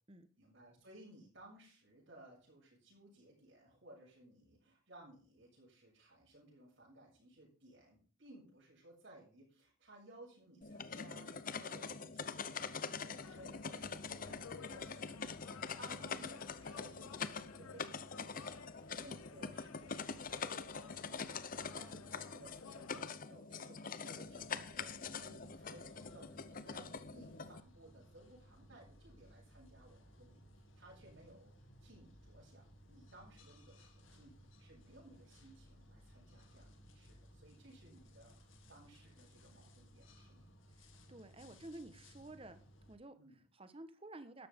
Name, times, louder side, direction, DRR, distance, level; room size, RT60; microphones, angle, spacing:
voice 1, 0.4-34.3 34.6-38.3 38.7-40.5 43.2-43.4, right 1 dB, 60° right, -4 dB, 6.7 m, -60 dB
sound 1, 10.6-27.6, left 5 dB, 40° left, 0.7 m, -44 dB
sound 2, 13.2-23.1, left 6 dB, 90° left, 0.5 m, -56 dB
sound 3, 24.2-43.0, equal, 70° left, 2.3 m, -61 dB
voice 2, 26.8-27.3 40.7-42.6 42.9-44.5, right 2 dB, 25° right, 10 dB, 1.2 m, -53 dB
12.5 x 12.5 x 3.7 m, 0.41 s
head